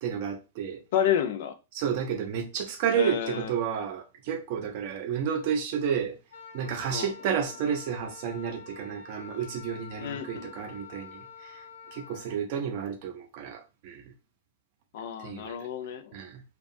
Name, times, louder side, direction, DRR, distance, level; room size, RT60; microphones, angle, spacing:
voice 1, 0.0-0.8 1.7-6.2 6.5-11.7 11.9-14.1 15.2-15.6 16.1-16.4, right 7 dB, 40° right, 0.5 m, -31 dB
voice 2, 0.9-1.5 3.0-3.5 6.9-7.1 10.0-10.5 14.9-16.2, left 9 dB, 50° left, 0.4 m, -30 dB
Wind instrument woodwind instrument, 6.3-12.4, left 6 dB, 85° left, 0.9 m, -47 dB
2.7 x 2.3 x 2.5 m
supercardioid pair, 165°, 0 cm